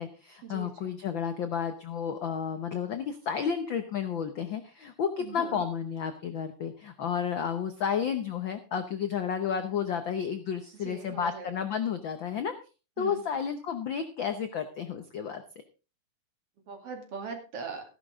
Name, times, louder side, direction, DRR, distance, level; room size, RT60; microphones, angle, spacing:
voice 1, 0.0-12.5 13.0-15.4, left 7 dB, 80° left, 8 dB, 1.0 m, -32 dB
voice 2, 5.2-5.6 10.8-11.5 13.0-13.2 16.7-17.8, right 5 dB, 50° right, 4 dB, 3.1 m, -40 dB
14.5 x 11.0 x 3.7 m, 0.32 s
omnidirectional pair, 3.6 m